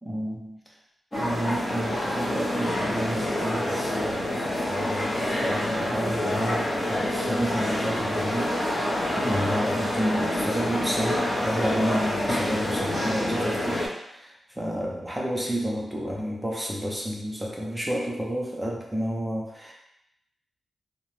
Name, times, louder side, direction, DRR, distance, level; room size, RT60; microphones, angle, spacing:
voice 1, 0.0-0.7 1.1-19.7, equal, 5° right, -3 dB, 0.5 m, -31 dB
sound 1, 1.1-13.9, left 1 dB, 25° left, 0.7 m, -27 dB
2.7 x 2.1 x 3.0 m, 0.82 s
wide cardioid pair, 175°, 0 cm